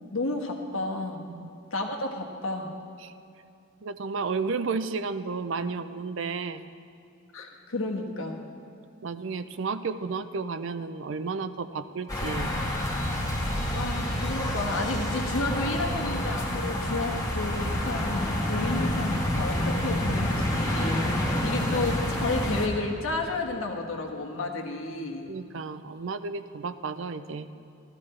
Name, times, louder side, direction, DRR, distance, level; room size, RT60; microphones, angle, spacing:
voice 1, 0.1-1.2 1.7-2.7 7.3-8.4 13.7-21.0 21.4-25.3, left 2 dB, 75° left, 1 dB, 1.3 m, -31 dB
voice 2, 3.8-6.6 9.0-12.5 25.3-27.5, right 4 dB, 65° right, 12 dB, 0.5 m, -32 dB
sound 1, 12.1-22.7, left 1 dB, 15° left, 1.4 m, -28 dB
15.0 x 13.0 x 3.2 m, 2.7 s
head